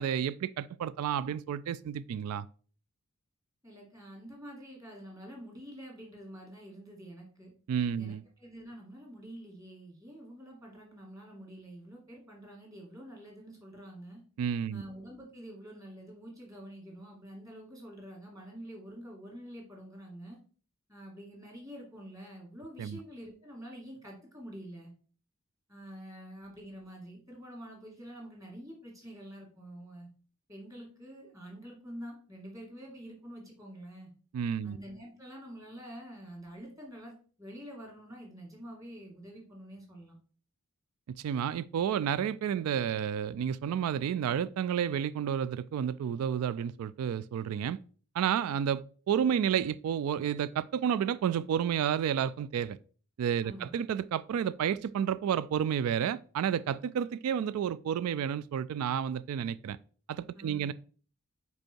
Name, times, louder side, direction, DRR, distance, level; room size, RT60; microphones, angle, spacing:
voice 1, 0.0-2.5 7.7-8.2 14.4-14.8 22.8-23.0 34.3-34.8 41.2-47.8 48.1-52.8 53.2-59.8 60.1-60.7, right 8 dB, 90° right, 0.3 m, -31 dB
voice 2, 3.6-7.5 8.0-14.2 14.7-20.4 20.9-24.9 25.7-30.1 30.5-34.1 34.6-40.2 53.4-53.7 60.3-60.7, equal, 15° right, 2.0 m, -47 dB
5.2 x 4.6 x 4.5 m
head